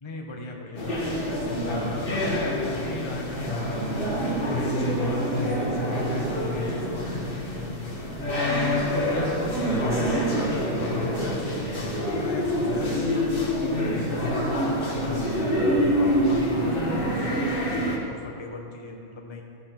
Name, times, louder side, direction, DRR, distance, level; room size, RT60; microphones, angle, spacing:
voice 1, 0.0-3.6 4.1-8.5 9.0-14.2 14.7-15.8 16.2-19.4, left 2 dB, 45° left, 0 dB, 0.3 m, -38 dB
sound 1, 0.7-18.0, equal, 30° left, 1.5 m, -26 dB
15.0 x 6.4 x 5.9 m, 2.6 s
omnidirectional pair, 2.2 m